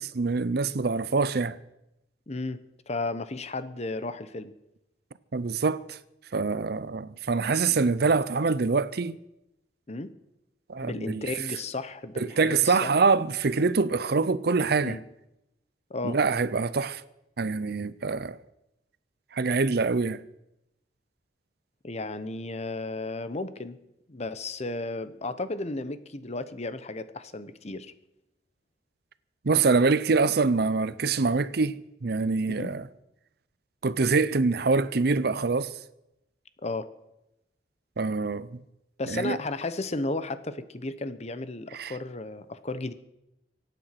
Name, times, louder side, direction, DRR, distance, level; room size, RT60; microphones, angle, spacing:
voice 1, 0.0-1.6 5.3-6.0 6.3-9.2 10.7-11.3 12.2-15.0 16.0-17.0 17.4-18.4 19.3-20.2 29.4-32.8 33.8-35.7 38.0-38.6 39.1-39.4 41.7-41.9, right 4 dB, 60° right, 0.6 m, -25 dB
voice 2, 2.3-2.6 2.9-4.5 9.9-10.1 10.8-12.9 14.8-15.0 15.9-16.2 21.8-23.8 24.1-27.9 32.6-32.7 36.6-36.9 39.0-42.9, left 2 dB, 40° left, 0.9 m, -34 dB
24.0 x 9.2 x 5.9 m
head